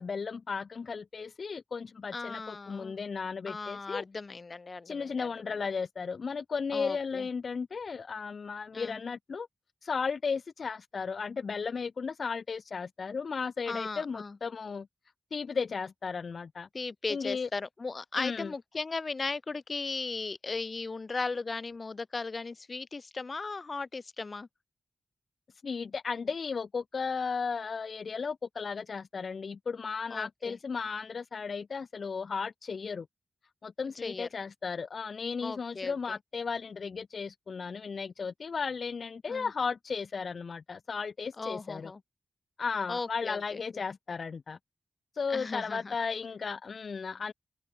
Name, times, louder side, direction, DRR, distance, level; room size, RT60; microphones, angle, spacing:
voice 1, 0.0-4.0 4.8-9.5 9.8-14.9 15.3-16.7 17.1-17.5 18.2-18.5 25.6-33.1 33.6-41.9 42.6-44.6 45.1-47.3, left 5 dB, 70° left, 1.3 m, -35 dB
voice 2, 2.1-3.0 3.5-5.3 6.7-7.3 8.7-9.0 13.7-14.4 16.7-24.5 30.1-30.6 34.0-34.3 35.4-36.2 39.3-39.5 41.4-42.0 42.9-43.6 45.3-45.9, left 3 dB, 50° left, 5.3 m, -37 dB
cardioid pair, 55°, 0 cm